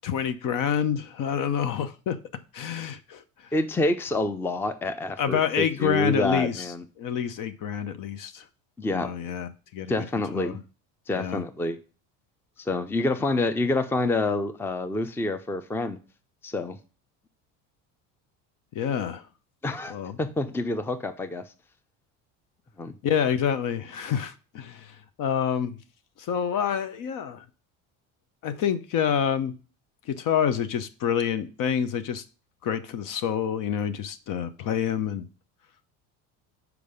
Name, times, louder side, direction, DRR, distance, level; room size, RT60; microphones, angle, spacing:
voice 1, 0.0-2.2 2.5-3.2 5.2-6.7 7.0-8.4 8.9-9.9 10.3-10.6 11.2-11.4 18.7-19.2 19.9-20.2 23.0-25.8 26.2-27.4 28.4-29.5 30.1-32.2 32.6-35.2, left 8 dB, 55° left, 0.8 m, -27 dB
voice 2, 3.5-6.8 8.8-9.1 9.9-10.6 11.1-11.8 12.6-16.0 16.4-16.8 19.6-21.4 22.8-22.9, left 2 dB, 5° left, 0.5 m, -27 dB
5.3 x 4.8 x 5.1 m
supercardioid pair, 100°, 38 cm